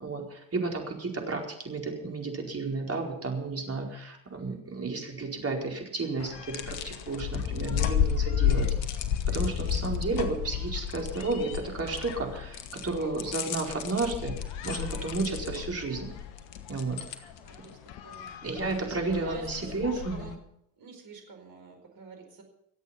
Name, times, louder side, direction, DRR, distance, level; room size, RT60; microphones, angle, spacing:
voice 1, 0.0-8.7 9.3-16.1 16.7-17.0 18.4-20.3, right 3 dB, 35° right, 1 dB, 4.6 m, -32 dB
sound 1, 6.2-20.3, left 9 dB, 75° left, 1.4 m, -32 dB
voice 2, 17.4-17.8 18.0-18.3 18.6-20.3 20.8-22.4, right 4 dB, 55° right, 3 dB, 4.8 m, -47 dB
23.5 x 8.3 x 5.9 m, 0.77 s
hypercardioid pair, 55°, 43 cm